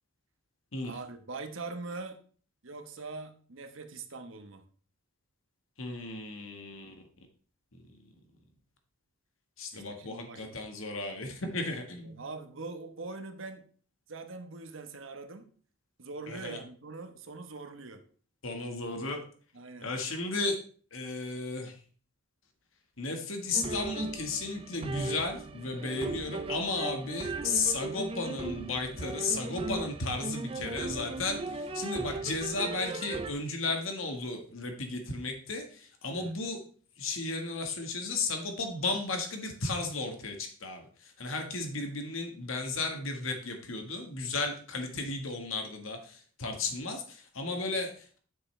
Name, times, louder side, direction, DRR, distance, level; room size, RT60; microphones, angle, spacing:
voice 1, 0.8-2.2 2.6-4.6 9.7-10.6 12.0-13.7 14.1-15.5 16.0-18.0 19.5-19.9 36.1-36.3, right 3 dB, 75° right, 7 dB, 1.2 m, -42 dB
voice 2, 5.8-6.9 7.7-7.8 9.6-12.2 16.3-16.6 18.4-19.2 19.8-20.6 20.9-21.8 23.0-36.6 37.0-48.2, left 3 dB, 85° left, 4 dB, 1.6 m, -34 dB
sound 1, 23.5-33.3, right 3 dB, 30° right, 0.6 m, -37 dB
9.5 x 7.4 x 3.3 m, 0.43 s
head